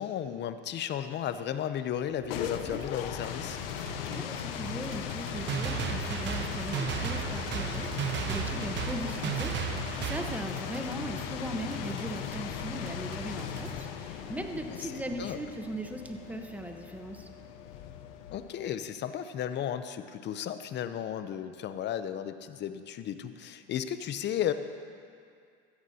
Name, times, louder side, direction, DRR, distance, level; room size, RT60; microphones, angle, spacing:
voice 1, 0.0-3.6 14.7-15.4 18.3-24.5, left 10 dB, 40° left, 11 dB, 0.7 m, -34 dB
sound 1, 2.0-18.7, left 9 dB, 80° left, 0.9 m, -38 dB
sound 2, 2.4-13.7, right 4 dB, 80° right, 1.2 m, -47 dB
voice 2, 4.0-17.3, right 1 dB, 5° right, 4 dB, 1.1 m, -39 dB
sound 3, 5.3-10.4, right 8 dB, 40° right, 0.9 m, -34 dB
16.0 x 13.5 x 2.8 m, 2.3 s
supercardioid pair, 100°, 29 cm